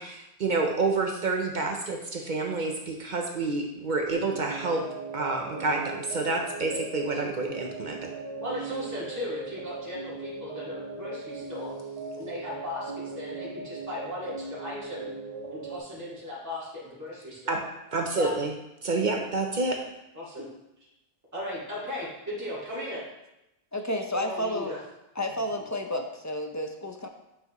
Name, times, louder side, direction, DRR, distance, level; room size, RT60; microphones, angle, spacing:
voice 1, 0.0-4.8 5.1-8.1 17.5-17.6 17.9-18.5 18.8-19.8, right 3 dB, 50° right, 2 dB, 0.8 m, -28 dB
sound 1, 4.1-15.8, right 3 dB, 35° right, 1.4 m, -38 dB
voice 2, 8.4-11.7 12.1-15.1 15.5-17.6 18.1-18.3 20.1-20.5 21.3-23.0 24.2-24.8, left 1 dB, 15° right, -8 dB, 2.0 m, -37 dB
voice 3, 23.7-24.7 25.2-27.1, left 1 dB, 25° left, 4 dB, 0.3 m, -31 dB
7.9 x 5.7 x 3.0 m, 0.90 s
omnidirectional pair, 1.1 m